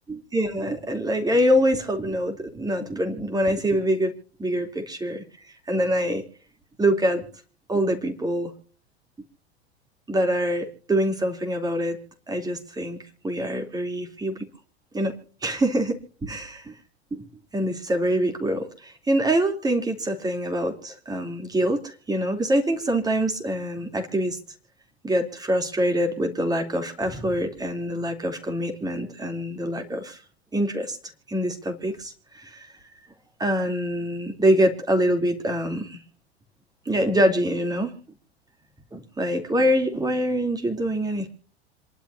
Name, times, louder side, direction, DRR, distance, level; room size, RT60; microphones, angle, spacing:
voice 1, 0.1-4.1 4.4-5.2 5.7-6.2 6.8-7.2 7.7-8.5 10.1-12.0 12.3-13.0 13.2-14.5 14.9-15.1 15.4-16.6 17.1-17.2 17.5-24.4 25.0-30.2 30.5-31.0 31.3-32.7 33.4-36.0 36.8-37.9 38.9-41.3, equal, 10° right, 5 dB, 3.2 m, -25 dB
27.5 x 11.5 x 2.8 m, 0.41 s
figure-of-eight pair, 90°, 33 cm